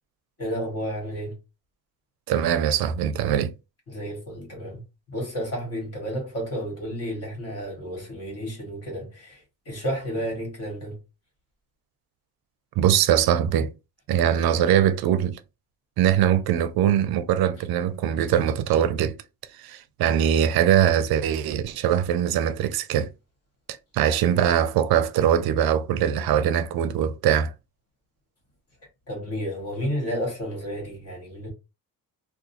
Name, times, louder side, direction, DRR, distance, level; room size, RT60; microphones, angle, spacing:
voice 1, 0.4-1.4 3.9-4.8 5.1-11.0 29.1-31.5, equal, 40° left, 1.9 m, -31 dB
voice 2, 2.3-3.5 12.8-13.7 14.1-15.4 16.0-19.2 19.5-23.1 23.9-27.5, right 10 dB, 75° right, 0.5 m, -22 dB
3.7 x 2.4 x 2.8 m
cardioid pair, 155°, 37 cm